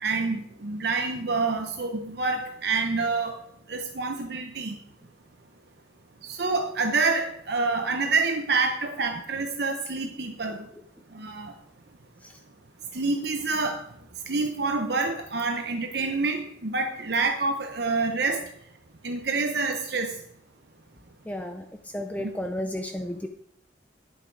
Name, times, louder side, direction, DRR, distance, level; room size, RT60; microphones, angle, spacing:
voice 1, 0.0-3.4 3.7-4.8 6.2-10.7 11.1-11.5 12.9-13.9 14.3-18.5 19.0-20.2, right 4 dB, 55° right, 4 dB, 0.9 m, -27 dB
voice 2, 21.3-23.3, left 1 dB, 10° left, 6 dB, 0.5 m, -33 dB
11.5 x 9.2 x 4.7 m, 0.70 s
head